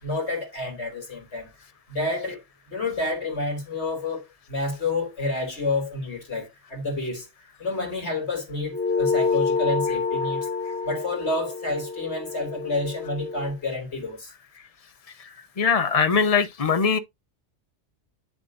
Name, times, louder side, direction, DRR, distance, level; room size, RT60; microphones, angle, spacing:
voice 1, 0.0-1.5 1.9-7.3 7.6-10.5 10.8-14.3, left 2 dB, 65° left, 3.5 m, -29 dB
sound 1, 8.7-13.5, left 4 dB, 10° left, 1.8 m, -27 dB
voice 2, 15.6-17.0, left 5 dB, 35° left, 1.0 m, -21 dB
9.3 x 7.1 x 2.6 m
omnidirectional pair, 1.2 m